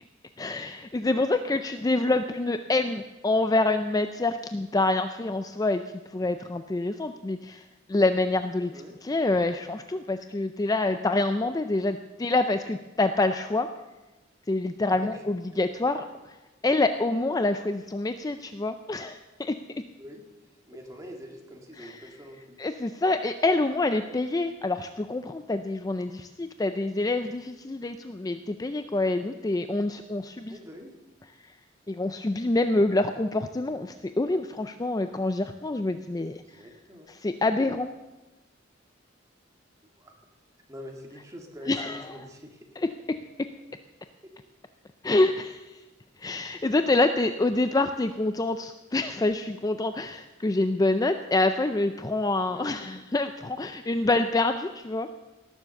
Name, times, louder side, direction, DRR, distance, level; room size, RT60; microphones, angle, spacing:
voice 1, 0.4-5.8 6.1-7.6 7.9-8.7 9.0-13.7 14.5-16.4 16.6-19.6 21.8-22.1 22.6-30.6 31.9-36.4 37.1-37.9 41.7-42.1 42.8-42.9 45.0-45.8 46.2-55.2, left 2 dB, 20° left, 9 dB, 0.4 m, -26 dB
voice 2, 8.6-9.0 14.9-15.2 20.0-20.3 20.7-22.6 30.5-30.9 36.4-37.1 40.0-40.1 40.7-41.7 42.1-42.7 52.4-52.7, equal, 15° right, 1 dB, 2.0 m, -44 dB
18.0 x 7.3 x 6.9 m, 1.1 s
head